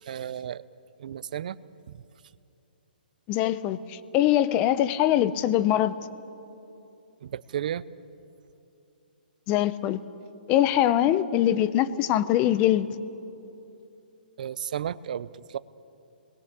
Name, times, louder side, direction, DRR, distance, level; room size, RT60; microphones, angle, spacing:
voice 1, 0.0-0.6 1.0-1.6 7.2-7.8 14.4-15.6, right 10 dB, 55° right, 17 dB, 0.7 m, -33 dB
voice 2, 3.3-5.9 9.5-10.0 10.5-12.9, left 12 dB, 25° left, 15 dB, 0.8 m, -23 dB
27.5 x 21.0 x 8.4 m, 2.8 s
hypercardioid pair, 160°, 5 cm